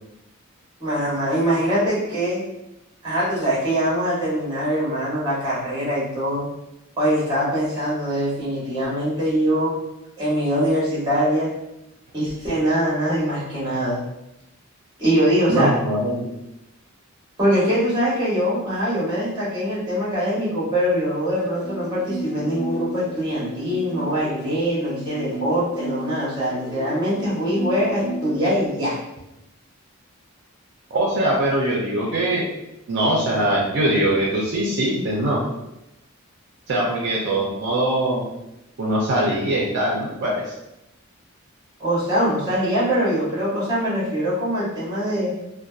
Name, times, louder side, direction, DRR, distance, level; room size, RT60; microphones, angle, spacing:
voice 1, 0.8-2.4 3.0-6.5 7.0-9.8 10.2-11.5 12.1-14.0 15.0-15.7 17.4-29.0 41.8-45.3, equal, 20° right, -7 dB, 1.0 m, -23 dB
voice 2, 15.5-16.3 30.9-32.5 32.9-35.4 36.7-38.2 38.8-40.4, right 1 dB, 55° right, -3 dB, 0.4 m, -22 dB
sound 1, 21.3-28.7, equal, 50° left, 1.1 m, -33 dB
2.6 x 2.1 x 2.3 m, 0.87 s
head